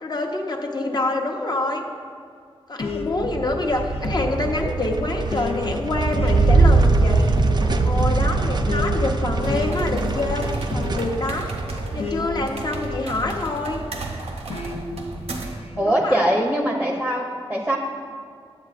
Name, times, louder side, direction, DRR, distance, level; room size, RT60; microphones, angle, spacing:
voice 1, 0.0-1.8 2.7-7.3 7.8-11.5 11.9-13.8 15.9-16.2, left 2 dB, 45° left, 2 dB, 0.7 m, -26 dB
sound 1, 2.8-13.9 14.5-16.0, left 4 dB, 80° left, 0.5 m, -32 dB
sound 2, 3.2-13.8, right 3 dB, 45° right, 0.4 m, -22 dB
sound 3, 9.4-15.7, right 3 dB, 85° right, 0.6 m, -34 dB
voice 2, 15.8-17.8, right 1 dB, 5° right, -1 dB, 0.6 m, -22 dB
9.5 x 7.3 x 2.5 m, 2.2 s
wide cardioid pair, 65°, 10 cm